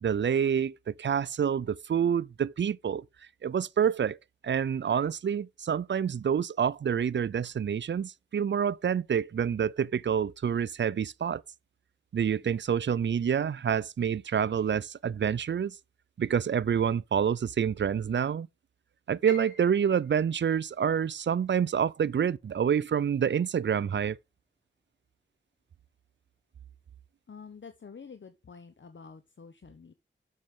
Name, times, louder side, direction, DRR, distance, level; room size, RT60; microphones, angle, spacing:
voice 1, 0.0-3.0 3.4-4.2 4.4-11.4 12.1-15.7 16.2-18.5 19.1-24.2, right 8 dB, 65° right, 0.4 m, -27 dB
Piano, 19.3-25.2 25.5-26.7 27.1-27.2 27.9-28.2, left 2 dB, 35° left, 4.4 m, -52 dB
voice 2, 27.3-29.9, left 5 dB, 70° left, 0.9 m, -48 dB
7.3 x 6.5 x 3.7 m
wide cardioid pair, 50°, 20 cm